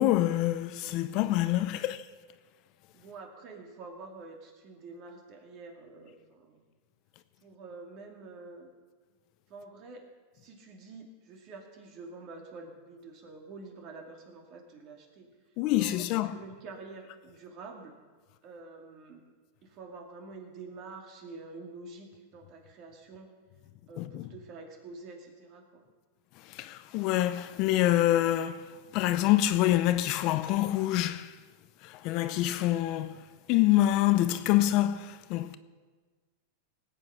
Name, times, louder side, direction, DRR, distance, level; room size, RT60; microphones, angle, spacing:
voice 1, 0.0-2.1 15.6-16.4 24.0-24.3 26.4-31.4 31.8-35.5, left 14 dB, 45° left, 0.6 m, -26 dB
voice 2, 2.9-6.6 7.4-8.7 9.5-10.1 10.3-15.3 15.7-17.9 18.4-19.2 19.6-23.3 23.9-25.8, right 3 dB, 40° right, 2.6 m, -47 dB
18.0 x 8.4 x 5.7 m
supercardioid pair, 145°, 0 cm